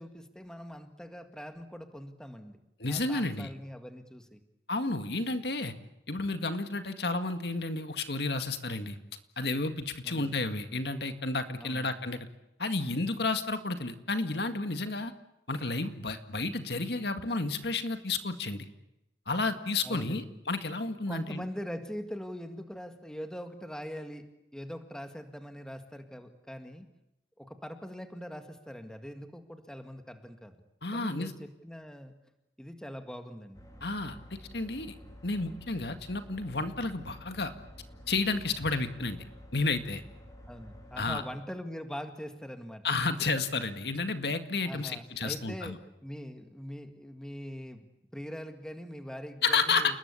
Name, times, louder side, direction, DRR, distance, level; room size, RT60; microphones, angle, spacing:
voice 1, 0.0-2.6 2.9-4.4 10.0-10.4 11.6-11.9 19.8-20.4 21.1-24.3 24.5-26.9 27.4-30.5 30.9-32.1 32.6-33.6 40.5-42.8 44.6-45.7 46.0-47.8 48.1-50.0, equal, 5° left, 7 dB, 1.9 m, -42 dB
voice 2, 2.8-3.5 4.7-5.7 6.1-9.0 9.4-12.3 12.6-15.1 15.5-18.7 19.3-21.4 30.8-31.3 33.8-34.9 35.2-37.5 38.1-39.2 39.5-40.0 41.0-41.2 42.8-45.8 49.4-49.9, left 3 dB, 65° left, 8 dB, 2.0 m, -31 dB
sound 1, 33.5-41.2, equal, 20° left, 4.3 m, -50 dB
29.5 x 20.5 x 8.5 m, 0.87 s
head